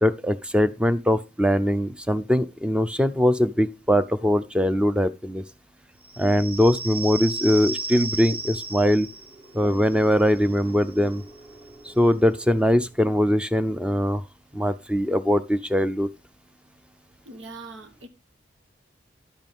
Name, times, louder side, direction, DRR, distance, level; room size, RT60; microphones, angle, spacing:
voice 1, 0.0-5.4 6.2-9.1 9.5-11.2 11.8-14.2 14.5-16.1, equal, 5° right, 0.5 m, -21 dB
sound 1, 6.0-13.3, right 2 dB, 30° right, 1.9 m, -36 dB
voice 2, 17.2-18.1, right 3 dB, 90° right, 1.3 m, -41 dB
11.5 x 8.0 x 3.6 m
head